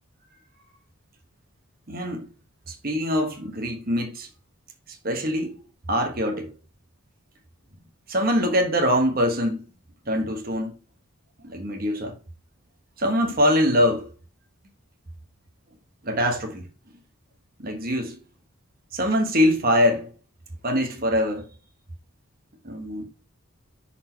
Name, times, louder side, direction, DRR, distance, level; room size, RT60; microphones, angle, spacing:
voice 1, 1.9-2.3 2.7-4.3 5.0-5.6 5.9-6.5 8.1-9.6 10.1-10.7 11.4-12.1 13.0-14.1 16.0-16.6 17.6-18.2 18.9-20.1 20.6-21.5 22.6-23.0, equal, 40° right, 1.2 m, -23 dB
6.3 x 4.3 x 4.4 m
head